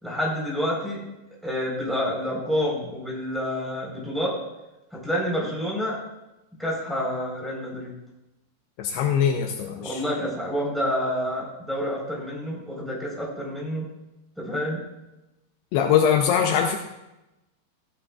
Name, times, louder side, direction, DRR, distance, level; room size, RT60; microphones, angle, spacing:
voice 1, 0.0-1.0 1.4-4.3 4.9-6.0 6.6-7.9 9.8-13.8 14.4-14.8, equal, ahead, -4 dB, 3.4 m, -28 dB
voice 2, 8.8-10.0 15.7-16.8, left 8 dB, 80° left, 3 dB, 2.7 m, -22 dB
15.0 x 11.0 x 2.4 m, 0.95 s
omnidirectional pair, 4.7 m